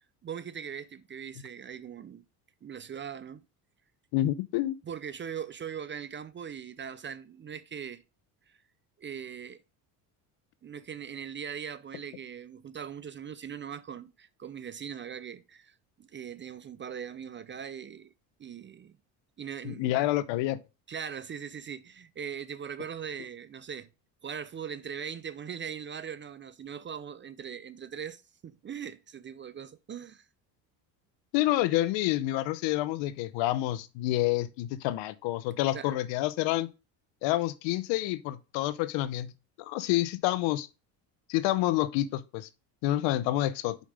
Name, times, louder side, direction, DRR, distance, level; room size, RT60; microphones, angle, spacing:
voice 1, 0.2-2.2 2.6-3.4 4.8-8.0 8.5-8.6 9.0-9.6 10.6-18.1 18.4-18.9 19.4-20.1 20.9-23.9 24.2-30.3 35.7-36.0, right 8 dB, 25° right, 0.4 m, -40 dB
voice 2, 4.1-4.8 19.6-20.6 31.3-36.7 37.2-39.3 39.7-40.7 41.3-42.5 42.8-43.8, left 15 dB, 70° left, 0.8 m, -28 dB
5.2 x 5.2 x 5.1 m
supercardioid pair, 85°, 47 cm